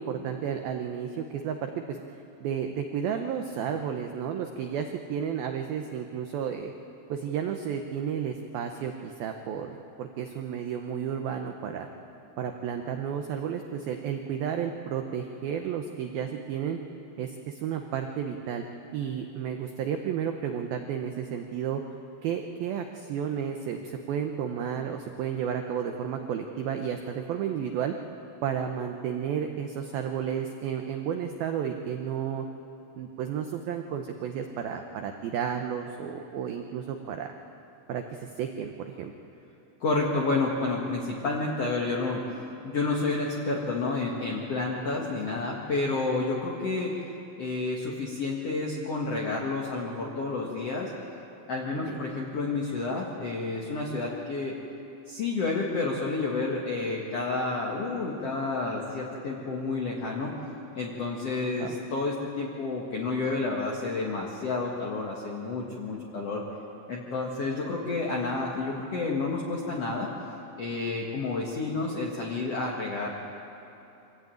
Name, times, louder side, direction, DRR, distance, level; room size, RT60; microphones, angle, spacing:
voice 1, 0.0-6.7 7.1-11.9 12.4-16.8 17.2-18.6 18.9-21.8 22.2-27.9 28.4-32.4 33.0-37.3 37.9-39.1 51.9-52.1 61.6-61.8, right 8 dB, 90° right, 5 dB, 2.1 m, -32 dB
voice 2, 39.8-42.2 42.6-47.0 47.4-50.9 51.5-54.6 55.1-60.4 60.7-66.4 66.9-70.1 70.6-73.1, left 3 dB, 65° left, -3 dB, 1.6 m, -30 dB
25.0 x 16.0 x 9.1 m, 3.0 s
omnidirectional pair, 5.6 m